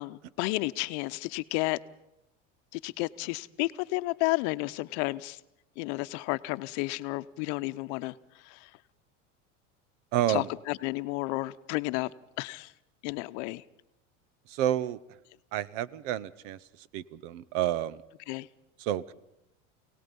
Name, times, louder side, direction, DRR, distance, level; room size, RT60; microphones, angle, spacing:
voice 1, 0.0-1.8 2.7-5.4 5.8-8.7 10.3-12.7 13.0-13.6 18.3-18.5, left 22 dB, 60° left, 14 dB, 0.8 m, -32 dB
voice 2, 10.1-10.5 14.5-15.0 15.5-16.6 16.9-18.0 18.8-19.1, right 12 dB, 65° right, 20 dB, 1.0 m, -29 dB
28.0 x 18.0 x 5.4 m, 0.86 s
supercardioid pair, 110°, 38 cm